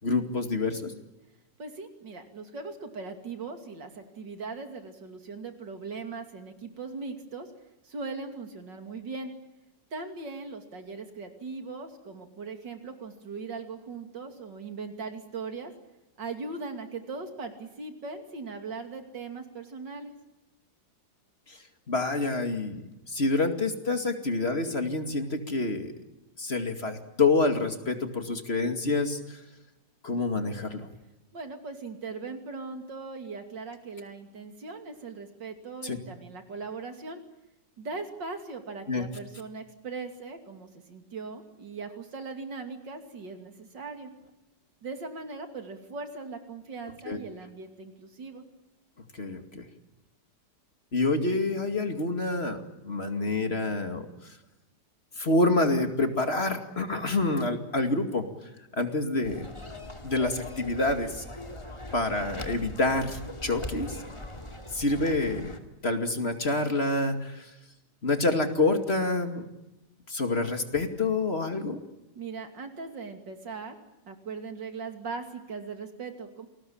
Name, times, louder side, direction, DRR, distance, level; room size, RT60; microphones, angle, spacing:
voice 1, 0.0-0.9 21.5-25.9 26.4-29.4 30.0-30.9 35.8-36.0 38.9-39.0 47.1-47.2 49.1-49.7 50.9-54.4 55.2-58.2 58.7-59.5 60.0-61.2 61.9-64.0 64.7-65.5 65.8-67.5 68.0-69.4 70.1-71.8, left 2 dB, 35° left, 6 dB, 2.6 m, -27 dB
voice 2, 1.6-7.5 7.8-9.3 9.9-15.7 16.2-20.1 31.3-37.2 37.8-44.1 44.8-48.4 72.1-73.7 74.0-76.5, right 4 dB, 85° right, 6 dB, 3.4 m, -39 dB
sound 1, 59.2-65.6, left 1 dB, 15° left, 2.5 m, -40 dB
28.5 x 20.5 x 8.8 m, 0.97 s
omnidirectional pair, 1.9 m